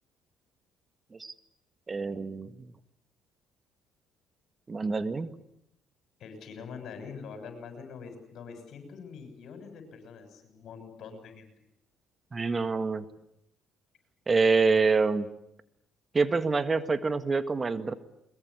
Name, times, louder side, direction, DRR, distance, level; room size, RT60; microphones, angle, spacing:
voice 1, 1.9-2.7 4.7-5.3 12.3-13.1 14.3-15.3 16.1-17.9, right 4 dB, 30° right, 12 dB, 1.7 m, -26 dB
voice 2, 6.2-11.5, left 5 dB, 65° left, 7 dB, 7.1 m, -44 dB
22.0 x 22.0 x 9.8 m, 0.79 s
hypercardioid pair, 55°, 0 cm